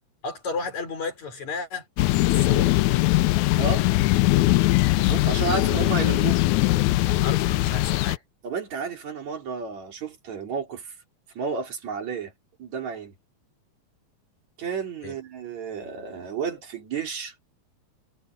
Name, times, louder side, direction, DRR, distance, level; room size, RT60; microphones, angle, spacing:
voice 1, 0.2-1.9 2.3-2.7 7.2-8.2 15.0-15.2, left 4 dB, 70° left, 6.3 m, -33 dB
sound 1, 2.0-8.2, left 18 dB, 90° left, 2.0 m, -21 dB
voice 2, 3.6-3.9 5.0-6.4 8.4-10.9 11.4-12.3 12.6-13.1 14.6-17.3, right 5 dB, 70° right, 4.5 m, -32 dB
omnidirectional pair, 3.3 m